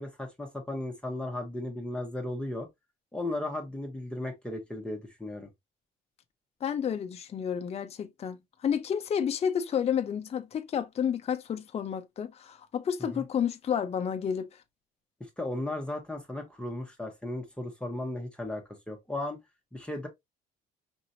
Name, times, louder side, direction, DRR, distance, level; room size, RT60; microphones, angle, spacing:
voice 1, 0.0-2.7 3.1-5.5 13.1-13.2 15.2-19.4 19.7-20.1, left 1 dB, 5° left, 1.1 m, -35 dB
voice 2, 6.6-14.5, left 8 dB, 40° left, 0.7 m, -30 dB
5.2 x 3.0 x 2.6 m
cardioid pair, 110°, 17 cm